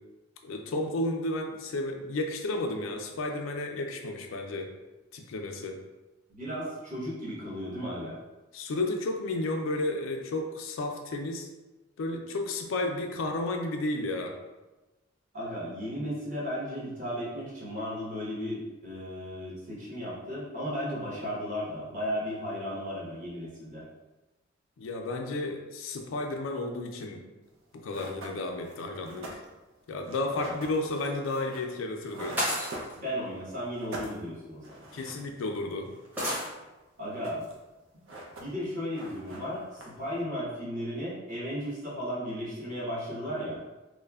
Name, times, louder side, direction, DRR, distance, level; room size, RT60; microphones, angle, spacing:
voice 1, 0.4-4.7 5.1-5.8 8.5-11.5 12.0-14.4 24.8-27.2 27.7-29.4 29.9-32.4 34.9-35.9, left 2 dB, 85° left, 3 dB, 0.4 m, -32 dB
voice 2, 6.3-8.2 15.3-23.8 30.3-30.5 32.9-34.9 37.0-37.5 38.4-43.6, equal, 40° right, -7 dB, 1.0 m, -35 dB
sound 1, 27.5-27.6 27.9-33.4 33.7-35.3 35.5-35.6 35.8-36.8 37.1-37.7 37.9-38.7 38.9-40.2, right 1 dB, 75° right, 0.5 m, -44 dB
sound 2, 30.9-31.1 32.4-33.0 34.2-34.3 35.0-35.1 36.2-36.5, equal, 10° right, 0.6 m, -31 dB
3.1 x 2.0 x 2.3 m, 1.1 s
head